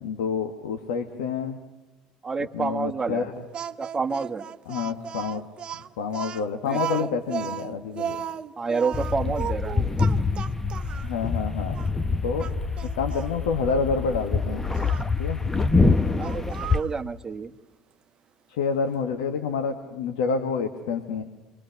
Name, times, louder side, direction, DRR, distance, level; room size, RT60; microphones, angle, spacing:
voice 1, 0.0-1.6 2.5-3.3 4.7-5.4 6.0-8.2 9.2-9.3 11.0-11.7 12.2-12.5 13.0-14.6 15.2-15.4 18.5-21.2, left 5 dB, 80° left, 5 dB, 1.9 m, -28 dB
voice 2, 2.2-3.3 3.8-4.5 6.6-7.1 8.6-9.9 16.1-17.5, right 4 dB, 20° right, 7 dB, 1.5 m, -29 dB
Speech, 3.5-11.1 11.7-11.9 12.4-13.3 14.7-15.1 16.2-17.0, right 8 dB, 40° right, 1.0 m, -35 dB
sound 1, 8.9-16.8, left 4 dB, 15° left, 1.3 m, -25 dB
28.0 x 23.5 x 6.7 m, 1.1 s
hypercardioid pair, 75°, 2 cm